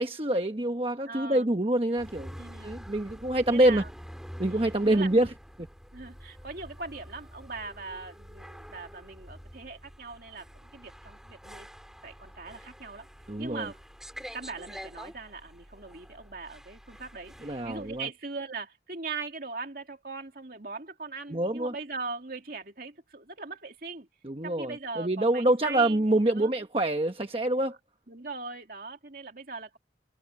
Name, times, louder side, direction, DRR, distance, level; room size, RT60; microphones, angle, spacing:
voice 1, 0.0-3.8 4.4-5.3 13.3-13.7 17.4-18.1 21.3-21.7 24.2-27.8, right 1 dB, 30° right, 1.1 m, -26 dB
voice 2, 1.1-1.5 2.4-2.7 3.5-3.9 4.5-5.3 5.9-10.5 10.7-11.7 12.0-13.1 13.4-13.8 14.3-24.1 24.4-26.5 28.1-29.8, right 4 dB, 55° right, 2.7 m, -40 dB
sound 1, 2.0-18.0, equal, 5° right, 4.1 m, -47 dB
head